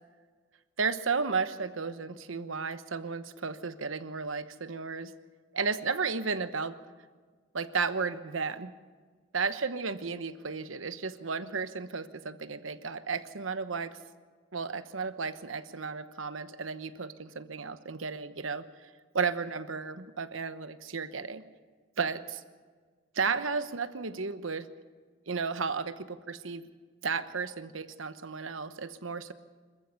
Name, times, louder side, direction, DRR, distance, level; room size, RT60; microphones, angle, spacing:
voice 1, 0.8-5.1 5.5-6.8 7.5-8.7 9.3-14.0 14.5-18.9 19.1-21.4 22.0-22.4 23.1-24.7 25.3-26.7 27.0-29.3, right 5 dB, 85° right, 11 dB, 1.1 m, -33 dB
26.0 x 14.5 x 7.0 m, 1.5 s
head